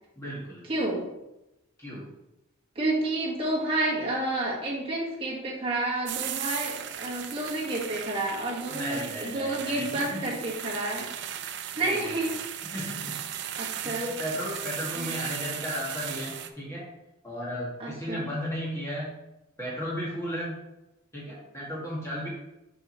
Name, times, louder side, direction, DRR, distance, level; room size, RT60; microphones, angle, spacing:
voice 1, 0.2-0.7 1.8-2.1 8.7-10.5 11.8-12.3 12.7-13.2 13.8-16.9 17.2-19.2 19.6-20.6 21.1-22.3, equal, 15° left, -7 dB, 2.1 m, -35 dB
voice 2, 0.7-1.0 2.7-11.1 11.8-12.3 13.6-14.1 14.9-15.1 17.8-18.3, right 2 dB, 30° right, -5 dB, 1.7 m, -30 dB
sound 1, 6.1-16.5, right 10 dB, 60° right, 0.5 m, -37 dB
6.9 x 5.4 x 3.1 m, 0.94 s
head